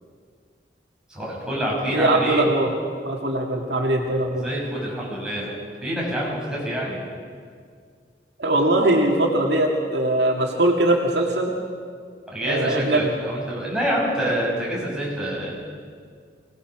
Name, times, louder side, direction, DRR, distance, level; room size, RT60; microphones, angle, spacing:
voice 1, 1.1-2.5 4.3-5.5 5.8-7.0 12.3-15.6, equal, 5° right, -5 dB, 6.8 m, -27 dB
voice 2, 1.9-2.7 3.0-4.5 8.4-11.5 12.5-13.1, right 1 dB, 70° right, 0 dB, 2.3 m, -21 dB
25.5 x 18.5 x 6.2 m, 2.1 s
head